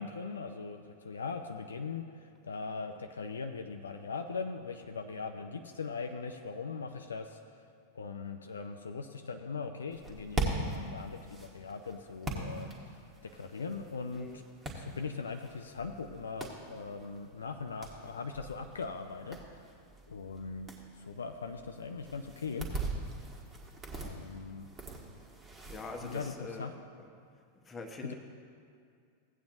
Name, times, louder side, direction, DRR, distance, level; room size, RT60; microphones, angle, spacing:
voice 1, 0.0-7.4 7.9-14.4 14.8-19.7 20.1-20.7 21.0-22.7 23.9-24.7 26.0-26.7 28.0-28.1, left 4 dB, 70° left, 6 dB, 0.5 m, -40 dB
sound 1, 9.9-26.3, right 2 dB, 20° right, 1.5 m, -42 dB
voice 2, 25.7-27.1 27.6-28.1, left 3 dB, 20° left, 2 dB, 1.1 m, -44 dB
16.5 x 8.6 x 2.6 m, 2.3 s
figure-of-eight pair, 90°, 0 cm